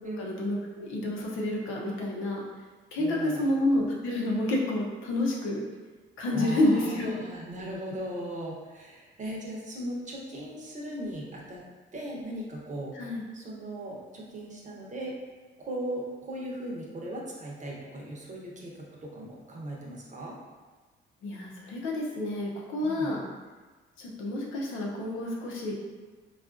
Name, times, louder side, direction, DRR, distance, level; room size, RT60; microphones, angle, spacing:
voice 1, 0.0-2.4 2.9-5.6 6.2-7.2 12.9-13.3 21.2-23.2 24.0-25.8, left 1 dB, 85° left, -2 dB, 0.7 m, -29 dB
voice 2, 3.0-3.5 6.3-11.6 11.9-13.0 13.3-15.2 15.6-20.3 22.8-23.1, right 1 dB, 40° right, -3 dB, 0.8 m, -38 dB
3.7 x 2.4 x 2.5 m, 1.3 s
cardioid pair, 90°, 20 cm